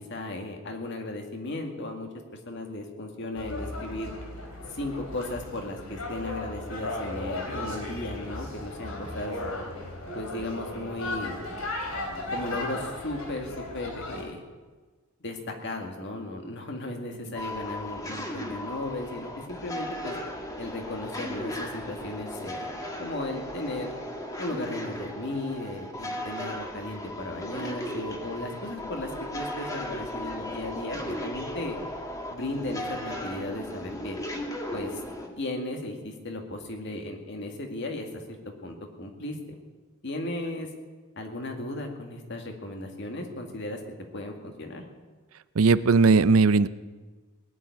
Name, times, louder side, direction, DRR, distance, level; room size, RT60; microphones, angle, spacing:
voice 1, 0.0-2.1 2.5-4.1 4.7-9.4 10.1-11.4 12.3-14.4 15.2-20.2 20.6-22.7 23.0-23.9 24.4-31.8 32.3-34.2 34.7-35.0 35.4-39.6 40.0-40.7 41.2-43.8 44.1-44.8, left 2 dB, 55° left, 3 dB, 2.1 m, -36 dB
sound 1, 3.3-14.2, left 2 dB, 85° left, 3.6 m, -36 dB
sound 2, 17.3-35.3, left 1 dB, 15° left, 1.7 m, -36 dB
voice 2, 45.6-46.7, right 4 dB, 80° right, 15 dB, 0.5 m, -18 dB
18.5 x 7.4 x 9.5 m, 1.3 s
head